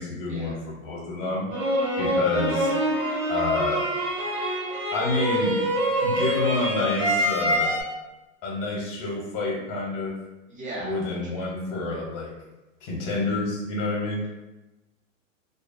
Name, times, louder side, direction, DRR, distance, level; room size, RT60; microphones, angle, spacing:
voice 1, 0.0-1.5 2.0-2.7 3.3-3.9 4.9-5.6 6.0-7.7 8.4-10.1 10.8-12.3 12.8-14.2, left 2 dB, 45° left, -3 dB, 0.9 m, -28 dB
sound 1, 1.5-7.8, equal, 45° right, 1.1 m, -25 dB
voice 2, 10.5-11.5 13.3-13.4, right 1 dB, 20° right, -4 dB, 0.8 m, -38 dB
2.5 x 2.2 x 2.5 m, 1.0 s
hypercardioid pair, 110°, 39 cm